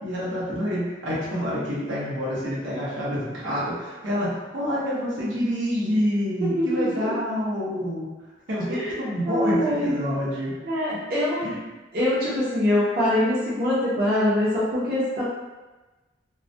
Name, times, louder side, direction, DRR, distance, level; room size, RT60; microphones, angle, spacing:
voice 1, 0.0-8.1 8.5-10.6 11.4-11.6, equal, 85° right, -8 dB, 0.8 m, -27 dB
voice 2, 6.4-7.1 8.7-8.9 9.2-10.0 10.6-11.5 11.9-15.2, left 1 dB, 50° right, -9 dB, 0.6 m, -24 dB
2.3 x 2.1 x 2.5 m, 1.2 s
head